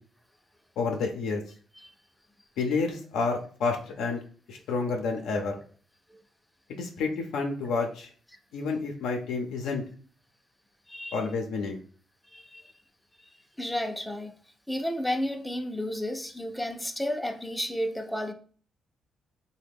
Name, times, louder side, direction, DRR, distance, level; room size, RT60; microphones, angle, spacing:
voice 1, 0.8-1.4 2.6-4.2 4.5-5.6 6.7-8.1 8.5-9.8 11.1-11.8, left 4 dB, 85° left, 0.5 m, -29 dB
voice 2, 10.9-11.2 12.3-12.7 13.2-14.3 14.7-18.3, left 1 dB, 5° left, 0.4 m, -32 dB
3.2 x 2.1 x 3.4 m
cardioid pair, 90°, 0 cm